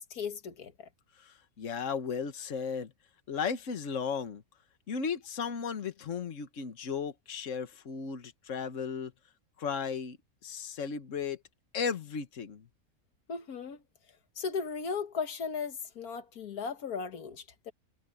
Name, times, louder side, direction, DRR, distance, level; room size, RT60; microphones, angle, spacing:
voice 1, 0.1-0.9 13.3-13.8 14.4-17.7, left 5 dB, 85° left, 1.8 m, -36 dB
voice 2, 1.2-2.9 3.3-4.4 4.9-9.1 9.6-10.2 10.4-11.4 11.7-12.7, left 6 dB, 55° left, 1.7 m, -35 dB
omnidirectional pair, 1.5 m